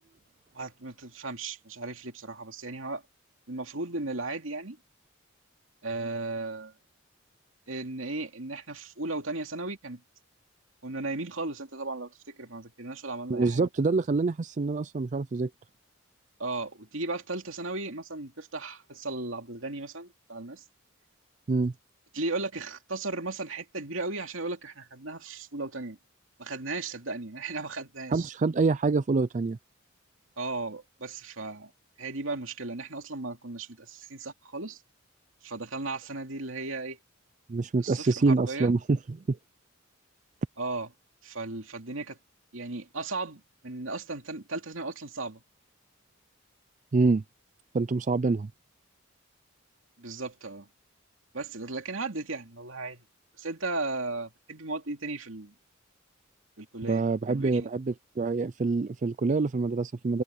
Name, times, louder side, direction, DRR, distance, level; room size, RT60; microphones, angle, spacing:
voice 1, 0.5-3.0 3.5-4.8 5.8-6.7 7.7-10.0 10.8-13.6 16.4-20.6 22.1-26.0 26.4-28.3 30.4-31.7 32.0-34.8 35.4-37.0 37.8-38.7 40.6-40.9 41.2-42.2 42.5-45.4 50.0-50.7 51.3-53.0 53.4-55.5 56.6-57.7, right 3 dB, 75° right, 2.7 m, -36 dB
voice 2, 13.3-15.5 21.5-21.7 28.1-29.6 37.5-39.4 46.9-47.2 47.7-48.5 56.9-60.2, right 3 dB, 35° right, 0.4 m, -26 dB
head